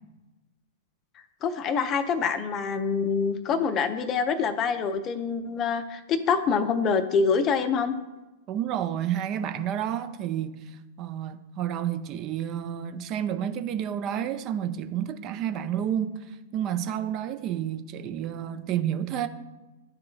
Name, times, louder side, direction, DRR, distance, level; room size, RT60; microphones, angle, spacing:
voice 1, 1.4-7.9, left 5 dB, 30° left, 0.5 m, -25 dB
voice 2, 8.5-19.3, right 10 dB, 35° right, 0.4 m, -30 dB
11.0 x 3.7 x 2.4 m
figure-of-eight pair, 100°, 0 cm